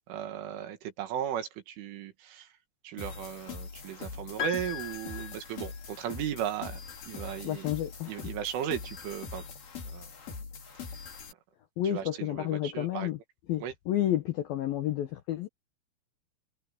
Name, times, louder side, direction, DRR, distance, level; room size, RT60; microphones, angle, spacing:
voice 1, 0.1-2.5 2.8-6.8 7.1-7.7 8.1-9.5 9.9-10.1 10.9-11.0 11.8-13.1 13.6-13.7, right 10 dB, 75° right, 4.6 m, -36 dB
sound 1, 3.0-11.3, left 5 dB, 50° left, 5.8 m, -43 dB
Piano, 4.4-6.1, left 10 dB, 25° left, 5.4 m, -38 dB
voice 2, 7.4-8.2 11.8-13.2 13.5-15.5, left 12 dB, 75° left, 2.2 m, -30 dB
omnidirectional pair, 5.8 m